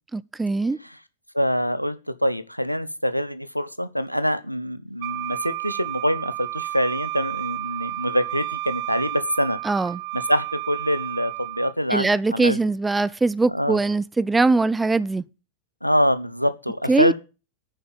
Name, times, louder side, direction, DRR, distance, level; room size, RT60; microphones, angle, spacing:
voice 1, 0.1-0.8 9.6-10.0 11.9-15.2 16.9-17.1, right 3 dB, 10° right, 0.6 m, -21 dB
voice 2, 1.3-2.0 2.2-9.6 10.1-12.6 13.5-13.8 15.8-17.1, equal, 90° left, 0.9 m, -24 dB
Wind instrument woodwind instrument, 5.0-11.8, right 16 dB, 45° right, 1.0 m, -32 dB
9.3 x 7.1 x 8.7 m
figure-of-eight pair, 90°, 0 cm